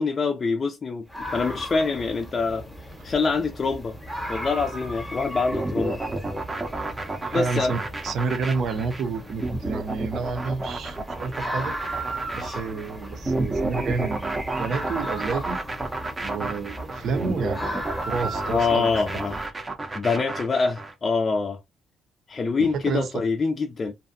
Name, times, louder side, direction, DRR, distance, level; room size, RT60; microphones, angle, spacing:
voice 1, 0.0-2.6 3.0-4.0 4.3-6.0 7.3-7.7 12.4-12.6 18.4-19.4 19.9-21.6 22.3-23.9, left 4 dB, 35° left, 0.4 m, -25 dB
sound 1, 1.1-19.5, right 1 dB, ahead, 0.9 m, -36 dB
sound 2, 5.5-20.9, right 2 dB, 25° right, 0.6 m, -31 dB
voice 2, 7.3-11.7 12.3-15.6 16.2-18.9 22.6-23.2, right 4 dB, 65° right, 0.6 m, -30 dB
2.5 x 2.2 x 2.5 m
cardioid pair, 90°, 0 cm